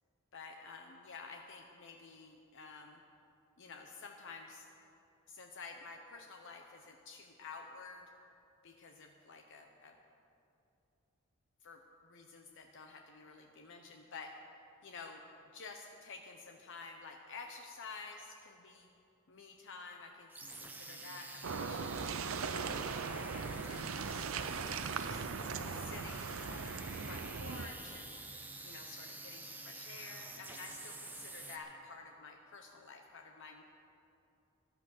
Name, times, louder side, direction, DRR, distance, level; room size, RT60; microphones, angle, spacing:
voice 1, 0.3-3.0 3.6-4.7 5.3-8.1 8.6-9.9 11.6-14.3 14.8-15.2 15.5-18.9 19.3-22.1 22.5-25.3 25.7-26.8 27.1-28.2 28.6-33.6, left 4 dB, 60° left, 3 dB, 0.8 m, -51 dB
sound 1, 20.3-31.6, right 2 dB, 10° right, 1.0 m, -48 dB
sound 2, 21.4-27.7, right 5 dB, 70° right, 0.6 m, -39 dB
sound 3, 23.2-27.6, right 1 dB, 30° right, 1.7 m, -59 dB
15.0 x 11.0 x 6.5 m, 2.7 s
head